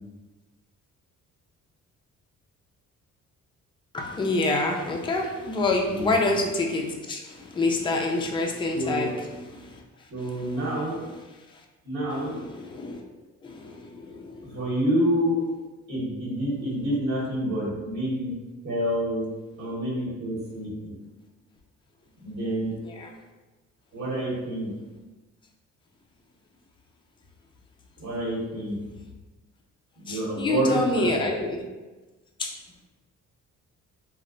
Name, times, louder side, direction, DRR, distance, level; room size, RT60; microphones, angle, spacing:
voice 1, 3.9-11.2 11.5-11.6 12.1-13.1 13.4-14.6 22.8-23.1 30.1-31.6 32.4-32.6, left 2 dB, 15° left, 0 dB, 0.3 m, -28 dB
voice 2, 8.7-9.1 10.1-11.0 11.8-12.3 14.4-15.4 15.9-18.3 18.6-19.3 19.6-20.9 22.2-22.7 23.9-24.7 28.0-28.8 30.0-31.1, equal, 60° right, -8 dB, 1.1 m, -27 dB
2.8 x 2.1 x 2.4 m, 1.2 s
cardioid pair, 90°, 30 cm